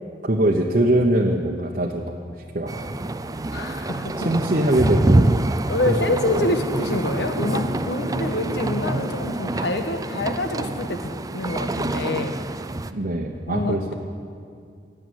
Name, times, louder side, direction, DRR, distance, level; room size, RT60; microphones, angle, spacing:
voice 1, 0.2-2.1 2.5-2.8 4.2-5.3 5.9-6.5 12.9-13.9, right 1 dB, 45° right, -1 dB, 1.0 m, -22 dB
sound 1, 2.7-12.9, right 2 dB, 20° right, 0.4 m, -26 dB
voice 2, 3.5-4.3 5.7-12.3 13.5-13.9, left 2 dB, 70° left, 6 dB, 1.3 m, -26 dB
17.0 x 7.9 x 9.4 m, 2.2 s
head